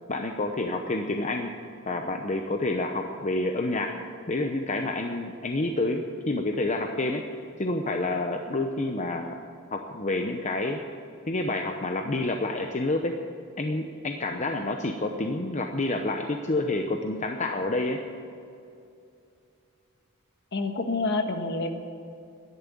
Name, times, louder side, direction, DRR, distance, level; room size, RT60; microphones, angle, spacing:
voice 1, 0.1-1.5 1.9-3.9 4.3-7.2 7.6-9.4 9.7-10.8 11.3-13.1 13.6-18.0, left 2 dB, 35° left, 4 dB, 0.8 m, -28 dB
voice 2, 20.5-21.7, left 3 dB, 55° left, 6 dB, 1.4 m, -27 dB
13.0 x 11.0 x 8.5 m, 2.5 s
head